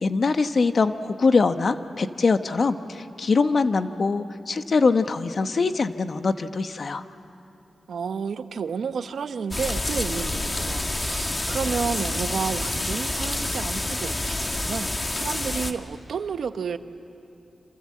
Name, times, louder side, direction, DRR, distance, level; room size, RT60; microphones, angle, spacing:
voice 1, 0.0-7.0, left 4 dB, 60° left, 9 dB, 1.1 m, -23 dB
voice 2, 7.9-16.8, right 6 dB, 85° right, 10 dB, 0.9 m, -31 dB
sound 1, 9.5-15.7, left 2 dB, 30° left, 1.6 m, -28 dB
28.5 x 27.0 x 7.6 m, 2.7 s
cardioid pair, 70°, 0 cm